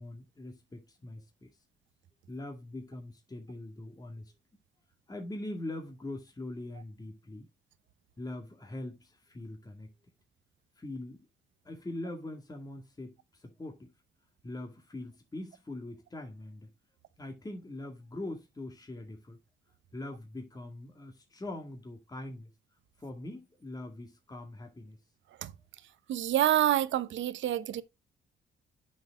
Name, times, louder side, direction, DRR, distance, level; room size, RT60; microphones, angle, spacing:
voice 1, 0.0-1.5 2.3-4.3 5.1-7.5 8.2-9.9 10.8-11.3 11.7-13.9 14.4-16.7 17.2-19.4 19.9-22.5 23.0-25.0, left 1 dB, 20° left, 2.0 m, -42 dB
voice 2, 26.1-27.8, right 12 dB, 70° right, 0.9 m, -27 dB
8.6 x 6.4 x 3.4 m
cardioid pair, 90°, 20 cm